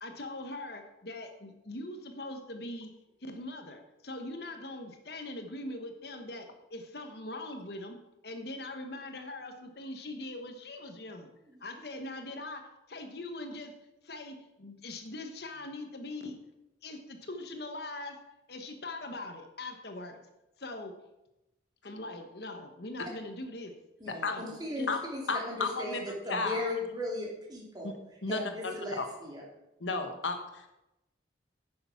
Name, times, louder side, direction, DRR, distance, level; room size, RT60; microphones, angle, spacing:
voice 1, 0.0-2.9 3.2-8.0 8.2-11.3 11.6-12.6 12.9-13.7 14.0-16.4 16.8-18.2 18.5-20.2 20.6-20.9 21.8-23.7 24.3-24.9, left 2 dB, 55° left, 6 dB, 1.1 m, -41 dB
voice 2, 24.0-27.9 28.3-29.4, left 1 dB, 20° right, -3 dB, 2.6 m, -37 dB
voice 3, 25.3-26.0 26.3-26.7 27.8-27.9 28.2-29.1 29.8-30.7, left 4 dB, 85° left, 6 dB, 1.3 m, -33 dB
10.0 x 6.7 x 5.8 m, 0.93 s
head